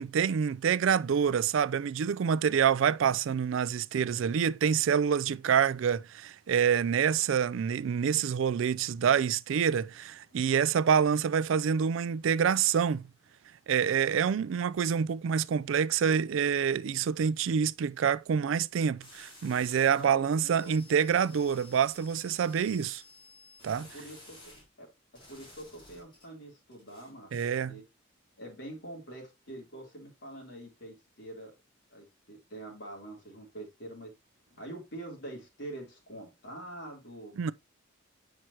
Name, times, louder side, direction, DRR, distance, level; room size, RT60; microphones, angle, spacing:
voice 1, 0.0-13.1 13.7-23.0 23.6-23.9 27.3-27.8 37.4-37.5, right 7 dB, 70° right, 0.3 m, -27 dB
sound 1, 19.0-20.1 20.5-24.6 25.1-26.3 26.7-27.4, left 2 dB, 25° left, 3.3 m, -53 dB
voice 2, 19.8-20.7 21.3-21.4 23.7-24.4 24.8-24.9 25.3-27.3 27.7-27.8 28.4-31.5 31.9-34.1 34.5-37.3, right 1 dB, 55° left, 3.3 m, -45 dB
7.7 x 5.8 x 2.9 m
head